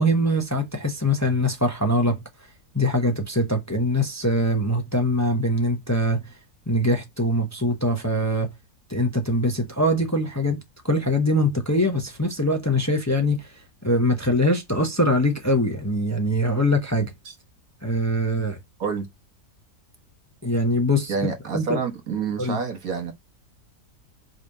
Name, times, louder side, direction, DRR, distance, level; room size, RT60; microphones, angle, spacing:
voice 1, 0.0-2.2 2.7-6.3 6.7-8.5 8.9-17.1 17.8-18.6 20.4-21.1 21.5-21.8 22.4-22.6, equal, 10° left, 0.9 m, -23 dB
voice 2, 21.1-23.1, right 5 dB, 60° right, 1.6 m, -28 dB
5.3 x 3.4 x 5.3 m
omnidirectional pair, 1.7 m